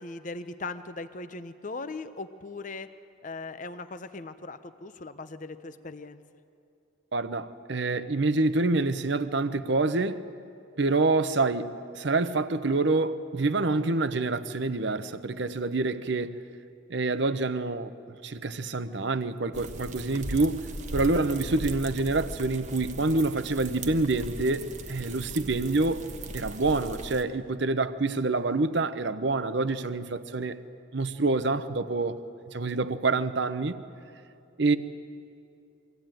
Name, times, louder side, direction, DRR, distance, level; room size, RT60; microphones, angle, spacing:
voice 1, 0.0-2.9 3.2-6.2, left 3 dB, 40° left, 0.7 m, -39 dB
voice 2, 7.1-10.2 10.8-16.4 16.9-17.9 18.2-20.6 20.9-26.1 26.3-30.6 30.9-32.2 32.5-33.8 34.6-34.8, right 3 dB, 60° right, 0.8 m, -27 dB
sound 1, 19.5-27.2, right 1 dB, 35° right, 1.1 m, -38 dB
23.5 x 15.5 x 9.0 m
head